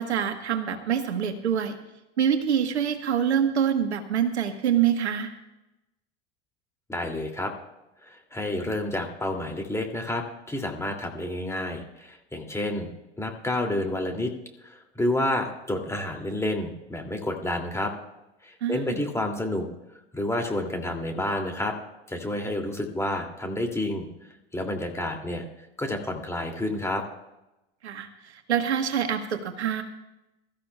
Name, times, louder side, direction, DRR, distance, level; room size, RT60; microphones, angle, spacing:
voice 1, 0.0-1.8 2.2-5.3 18.6-19.0 27.8-29.8, right 8 dB, 80° right, 8 dB, 1.3 m, -25 dB
voice 2, 6.9-7.5 8.0-12.9 13.2-14.3 14.6-17.9 18.4-19.7 20.1-21.8 22.1-24.1 24.5-25.4 25.8-27.0, left 1 dB, 10° left, 2 dB, 2.5 m, -29 dB
22.5 x 13.5 x 2.3 m, 0.94 s
figure-of-eight pair, 80°, 33 cm